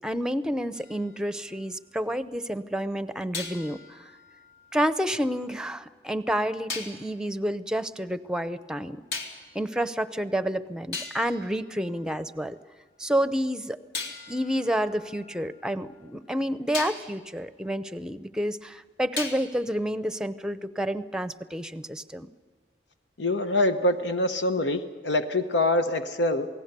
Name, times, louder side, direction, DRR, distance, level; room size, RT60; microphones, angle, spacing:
voice 1, 0.0-4.1 4.7-9.0 9.5-12.6 13.0-13.8 14.0-22.3, equal, 5° right, 12 dB, 0.7 m, -29 dB
sound 1, 0.7-2.2 3.3-5.5 6.7-7.1 9.1-9.6 10.4-10.5 10.9-12.5 13.9-16.1 16.7-17.2 19.2-19.7, left 4 dB, 65° left, 2.7 m, -39 dB
voice 2, 23.2-26.5, left 1 dB, 85° left, 7 dB, 1.0 m, -25 dB
28.0 x 18.5 x 6.8 m, 1.5 s
head